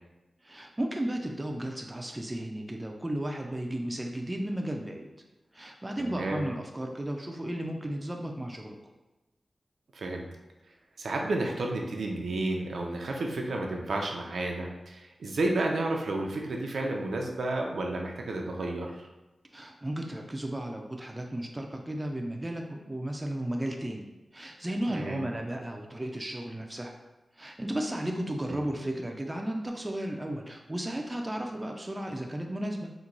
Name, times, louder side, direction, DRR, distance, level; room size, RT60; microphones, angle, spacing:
voice 1, 0.4-5.1 5.5-8.8 19.5-26.9 27.4-32.9, right 1 dB, 15° right, 2 dB, 0.3 m, -34 dB
voice 2, 6.0-6.4 9.9-10.3 11.0-19.1 24.9-25.2 28.5-28.6, right 2 dB, 85° right, 1 dB, 0.4 m, -31 dB
3.0 x 2.2 x 3.7 m, 1.0 s
wide cardioid pair, 130°, 0 cm